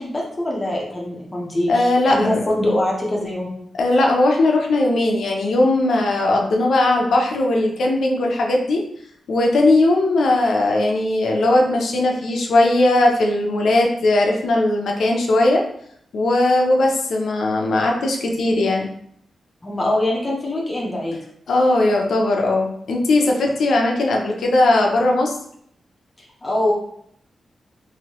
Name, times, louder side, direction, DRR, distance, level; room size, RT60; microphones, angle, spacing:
voice 1, 0.0-3.5 19.6-21.2 26.4-26.7, left 1 dB, 25° left, -3 dB, 0.7 m, -23 dB
voice 2, 1.7-2.4 3.8-8.8 9.3-15.6 16.1-18.9 21.5-25.3, left 2 dB, 80° left, 0 dB, 0.6 m, -18 dB
3.0 x 2.7 x 2.9 m, 0.69 s
wide cardioid pair, 125°, 0 cm